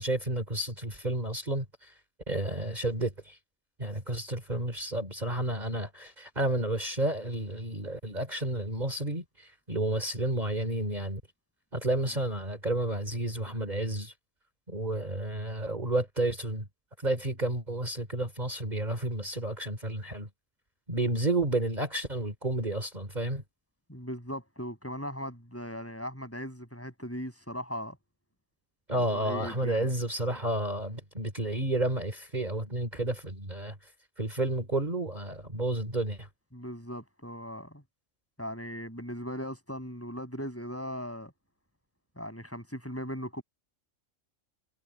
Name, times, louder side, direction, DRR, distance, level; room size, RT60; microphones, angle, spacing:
voice 1, 0.0-1.9 2.3-3.4 3.8-11.2 11.7-14.1 14.7-16.7 17.0-20.3 20.9-23.4 28.9-33.9 34.2-36.3, right 1 dB, 35° right, 3.5 m, -31 dB
voice 2, 23.9-28.0 29.1-29.9 36.5-37.8 38.4-41.3 42.2-43.4, equal, 10° left, 7.7 m, -38 dB
omnidirectional pair, 1.3 m